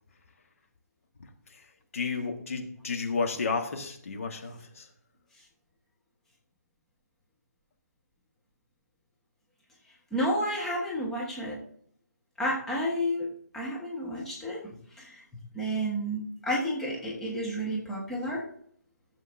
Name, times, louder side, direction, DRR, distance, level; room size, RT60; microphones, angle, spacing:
voice 1, 1.9-4.9, left 4 dB, 50° left, 4 dB, 1.5 m, -32 dB
voice 2, 10.1-11.6 12.4-13.3 13.5-14.6 15.0-15.2 15.5-18.4, equal, 5° left, -4 dB, 1.3 m, -31 dB
15.0 x 7.5 x 2.7 m, 0.64 s
figure-of-eight pair, 145°, 10 cm